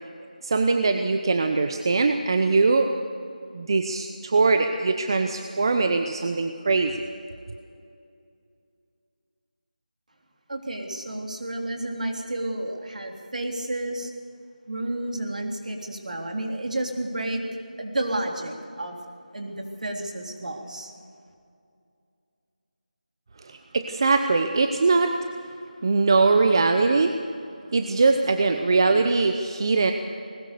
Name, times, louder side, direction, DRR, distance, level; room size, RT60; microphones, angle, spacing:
voice 1, 0.4-2.9 3.5-7.1 23.4-25.1 25.8-27.1 27.7-29.9, right 3 dB, 30° right, 6 dB, 0.8 m, -21 dB
voice 2, 10.5-14.1 14.7-17.4 17.8-19.0 19.3-20.9, right 1 dB, 60° right, 2 dB, 3.4 m, -31 dB
20.5 x 19.5 x 6.8 m, 2.5 s
figure-of-eight pair, 170°, 5 cm